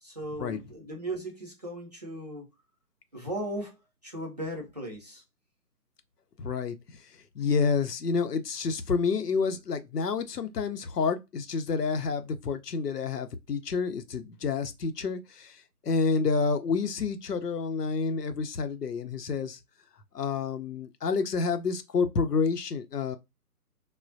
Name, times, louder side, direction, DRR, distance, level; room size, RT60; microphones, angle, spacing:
voice 1, 0.0-2.5 3.1-3.8 4.0-5.2, right 1 dB, 30° right, 0.5 m, -37 dB
voice 2, 6.4-19.6 20.1-23.2, left 5 dB, 80° left, 0.7 m, -29 dB
3.2 x 2.1 x 2.5 m
figure-of-eight pair, 140°, 46 cm